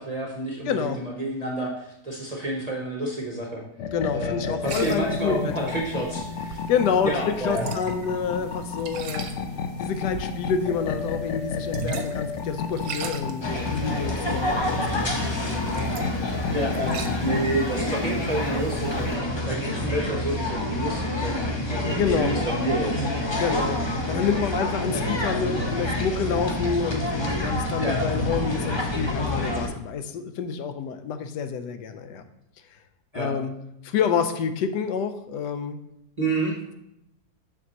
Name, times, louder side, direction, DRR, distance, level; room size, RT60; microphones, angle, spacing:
voice 1, 0.0-3.6 4.1-6.6 7.0-7.7 9.1-9.2 16.5-16.9 17.2-19.2 19.4-23.1 27.8-28.0 33.1-33.3 36.2-36.7, right 2 dB, 35° right, -1 dB, 0.7 m, -29 dB
voice 2, 0.7-1.0 3.9-5.7 6.7-9.3 9.8-15.9 16.8-17.1 21.9-22.4 23.4-32.2 33.1-33.5 33.8-35.8, left 6 dB, 85° left, 9 dB, 1.2 m, -28 dB
sound 1, 3.8-17.5, left 5 dB, 65° left, 0.7 m, -32 dB
sound 2, 4.7-19.2, right 5 dB, 65° right, 1.0 m, -40 dB
sound 3, 13.4-29.7, left 1 dB, 45° left, 0.3 m, -27 dB
7.0 x 6.0 x 2.8 m, 0.82 s
omnidirectional pair, 1.8 m